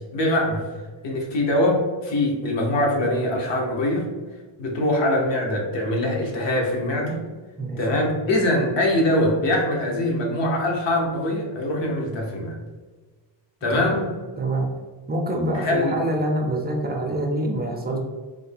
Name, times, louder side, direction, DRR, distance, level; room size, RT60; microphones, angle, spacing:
voice 1, 0.1-0.6 1.0-4.1 4.6-7.2 7.8-12.6 13.6-14.1 15.5-16.0, left 1 dB, 65° left, -1 dB, 1.0 m, -23 dB
voice 2, 7.6-8.0 13.7-13.9 14.4-14.7 15.1-18.0, right 1 dB, 20° right, 1 dB, 0.5 m, -26 dB
3.5 x 2.2 x 3.4 m, 1.3 s
cardioid pair, 120°, 48 cm